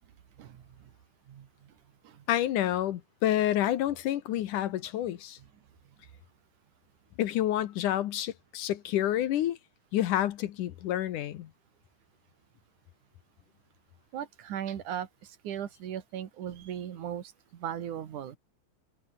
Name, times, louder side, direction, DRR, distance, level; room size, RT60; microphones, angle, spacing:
voice 1, 0.4-0.9 1.3-1.7 2.0-2.2 5.4-5.5 14.1-18.4, right 10 dB, 60° right, 3.1 m, -38 dB
voice 2, 2.3-5.4 7.2-9.6 9.9-11.5, left 12 dB, 70° left, 2.4 m, -29 dB
omnidirectional pair, 4.2 m